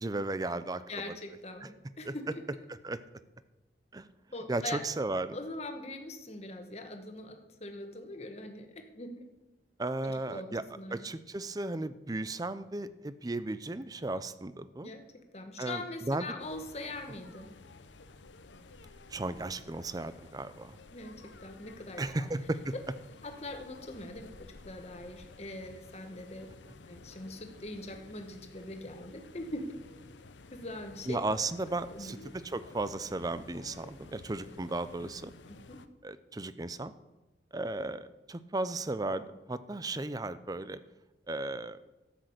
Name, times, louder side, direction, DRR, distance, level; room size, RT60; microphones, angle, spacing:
voice 1, 0.0-0.8 2.0-2.1 2.8-3.0 3.9-4.1 4.5-5.4 9.8-10.6 10.9-14.9 15.6-16.3 19.1-20.8 22.0-22.7 31.1-35.3 36.0-36.9 37.5-40.8 41.3-41.8, right 2 dB, 20° right, 14 dB, 0.5 m, -35 dB
voice 2, 0.9-2.4 4.3-4.8 5.3-9.2 10.0-11.0 14.8-17.5 20.9-22.3 23.2-26.5 26.9-29.8 30.5-31.2 31.9-32.1 35.5-35.9, left 2 dB, 35° left, 5 dB, 1.4 m, -42 dB
sound 1, 16.4-35.9, left 3 dB, 85° left, 0.8 m, -53 dB
12.5 x 6.5 x 7.9 m, 1.1 s
head